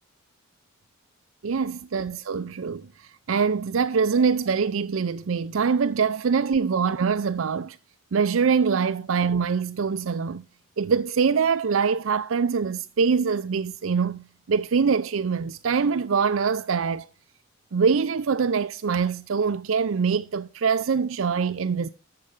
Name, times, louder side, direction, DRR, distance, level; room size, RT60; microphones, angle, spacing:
voice 1, 1.4-7.8 8.1-10.4 10.8-17.1 17.7-21.9, right 5 dB, 75° right, 0.5 m, -24 dB
14.0 x 6.6 x 5.1 m
head